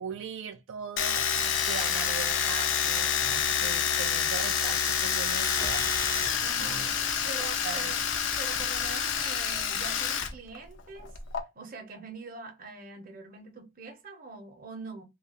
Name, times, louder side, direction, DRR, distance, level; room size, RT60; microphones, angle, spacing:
voice 1, 0.0-5.9 6.6-6.9 7.4-8.0, right 6 dB, 75° right, 0.3 m, -40 dB
Domestic sounds home sounds, 1.0-10.3 10.6-11.4, left 7 dB, 70° left, 0.5 m, -28 dB
Explosion, 5.4-10.5, left 1 dB, 10° left, 0.3 m, -47 dB
voice 2, 6.4-6.9 7.3-8.0 8.4-11.1 11.5-15.0, right 4 dB, 45° right, 0.7 m, -43 dB
2.4 x 2.3 x 2.8 m
head